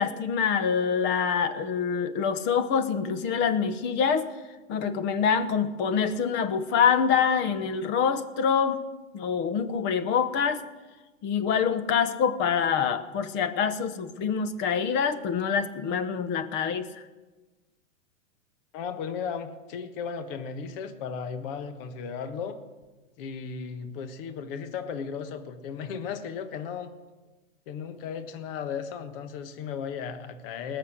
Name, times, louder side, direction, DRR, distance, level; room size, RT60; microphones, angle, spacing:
voice 1, 0.0-4.3 4.7-8.8 9.1-10.6 11.2-16.9, left 6 dB, 30° left, 11 dB, 1.0 m, -25 dB
voice 2, 18.7-22.6 23.2-26.9 27.7-30.8, left 6 dB, 45° left, 8 dB, 1.4 m, -35 dB
19.5 x 6.9 x 8.0 m, 1.2 s
hypercardioid pair, 135°, 39 cm